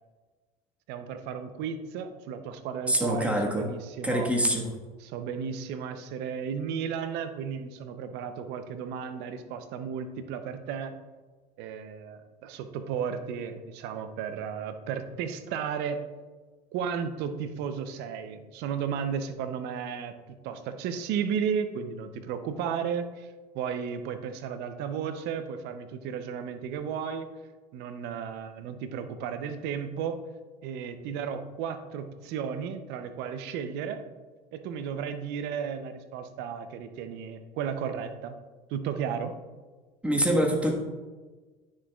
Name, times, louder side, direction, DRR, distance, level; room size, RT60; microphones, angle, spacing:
voice 1, 0.9-4.3 5.0-10.9 11.6-16.0 16.7-23.3 23.5-27.3 27.7-30.2 30.6-34.0 34.5-38.4 38.7-39.4, right 7 dB, 65° right, 9 dB, 0.7 m, -34 dB
voice 2, 2.9-3.7 4.0-4.7 40.0-40.7, equal, 5° right, 0 dB, 1.4 m, -25 dB
9.7 x 6.3 x 2.4 m, 1.3 s
hypercardioid pair, 80°, 18 cm